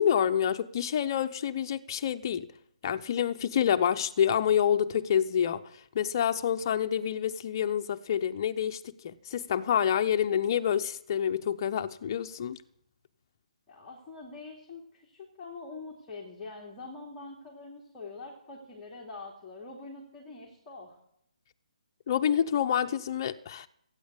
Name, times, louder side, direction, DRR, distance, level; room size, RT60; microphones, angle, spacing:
voice 1, 0.0-2.5 2.8-5.6 5.9-12.6 22.1-23.7, left 9 dB, 30° left, 0.7 m, -27 dB
voice 2, 13.7-21.0, left 3 dB, 10° left, 2.7 m, -44 dB
17.0 x 9.6 x 8.3 m
hypercardioid pair, 170°, 4 cm